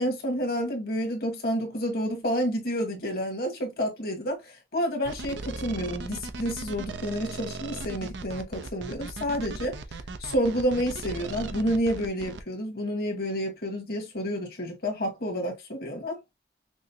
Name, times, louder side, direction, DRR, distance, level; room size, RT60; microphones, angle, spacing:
voice 1, 0.0-9.7 10.2-16.2, equal, 55° left, 1.5 m, -29 dB
sound 1, 5.0-12.4, right 3 dB, 80° right, 0.6 m, -37 dB
6.2 x 2.1 x 2.8 m
head